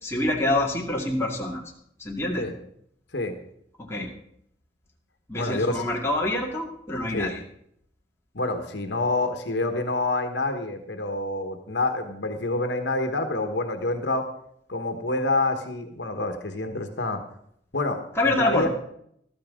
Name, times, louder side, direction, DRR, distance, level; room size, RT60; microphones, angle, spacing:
voice 1, 0.0-1.6 2.0-2.5 3.9-4.1 5.3-7.4 18.2-18.7, left 1 dB, 15° left, -2 dB, 2.1 m, -26 dB
voice 2, 5.4-5.8 7.1-7.3 8.3-14.3 14.7-17.2 17.7-18.7, left 2 dB, 75° left, 6 dB, 1.4 m, -27 dB
14.5 x 13.0 x 3.7 m, 0.70 s
head